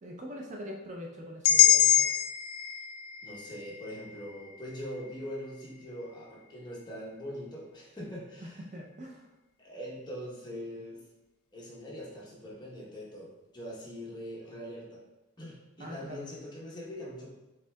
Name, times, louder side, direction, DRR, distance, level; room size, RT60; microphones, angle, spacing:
voice 1, 0.0-2.1 8.7-9.3 15.8-16.3, equal, 35° right, 0 dB, 0.4 m, -43 dB
sound 1, 1.4-5.5, left 12 dB, 85° left, 0.3 m, -26 dB
voice 2, 3.2-8.6 9.6-11.0 11.5-15.0 15.4-17.3, equal, 20° left, -4 dB, 0.8 m, -42 dB
6.1 x 3.5 x 2.2 m, 1.0 s
head